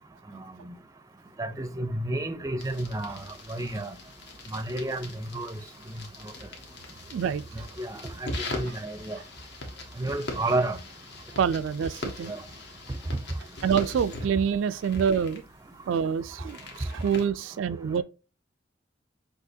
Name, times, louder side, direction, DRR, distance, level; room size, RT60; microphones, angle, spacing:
voice 1, 0.3-0.7 1.4-3.9 4.5-5.6 7.8-9.2 10.0-10.8 12.3-12.4, right 2 dB, 15° right, 0.5 m, -31 dB
sound 1, 2.6-17.3, left 2 dB, 60° left, 1.3 m, -41 dB
voice 2, 7.1-7.4 11.3-12.3 13.6-15.4 15.9-18.0, right 7 dB, 85° right, 0.3 m, -26 dB
6.1 x 2.8 x 2.7 m
head